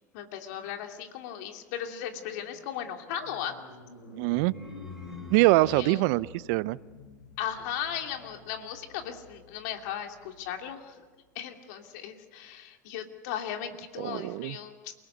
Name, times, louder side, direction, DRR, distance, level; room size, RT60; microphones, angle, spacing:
voice 1, 0.1-3.5 5.7-6.0 7.4-11.0 11.3-14.9, left 9 dB, 65° left, 4 dB, 2.8 m, -37 dB
sound 1, 1.2-10.8, left 3 dB, 85° left, 5.7 m, -48 dB
voice 2, 4.1-4.5 5.3-6.8 14.0-14.6, right 21 dB, 65° right, 20 dB, 0.6 m, -24 dB
sound 2, 4.3-6.2, equal, 5° right, 4.7 m, -56 dB
28.5 x 18.5 x 8.2 m, 1.4 s
hypercardioid pair, 80°, 10 cm